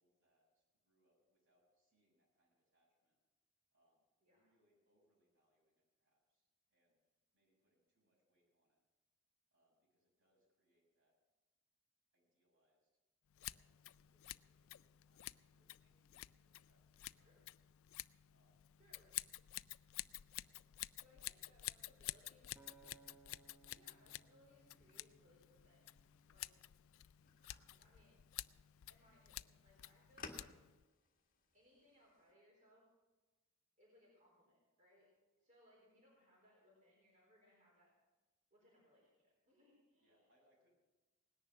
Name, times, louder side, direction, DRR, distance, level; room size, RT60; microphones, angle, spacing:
voice 1, 0.0-3.2 3.7-7.0 7.3-8.8 9.5-11.1 12.1-12.9 13.4-17.4 18.3-18.7 20.3-21.4 21.7-22.7 27.6-27.9 40.0-40.7, equal, 65° right, -3 dB, 6.9 m, -81 dB
Scissors, 13.3-30.8, left 16 dB, 70° left, 0.4 m, -51 dB
voice 2, 18.8-19.2 21.0-22.5 23.7-25.9 26.3-26.5 27.8-28.2 28.5-28.6 28.9-30.6 31.5-32.9 33.8-35.1 35.4-37.9 38.5-40.2, left 1 dB, 35° right, -4 dB, 4.1 m, -70 dB
Acoustic guitar, 22.6-26.9 27.5-27.8, right 4 dB, 10° right, 1.2 m, -68 dB
sound 1, 24.8-32.3, left 4 dB, 40° left, 1.6 m, -61 dB
18.5 x 10.5 x 6.1 m, 1.2 s
head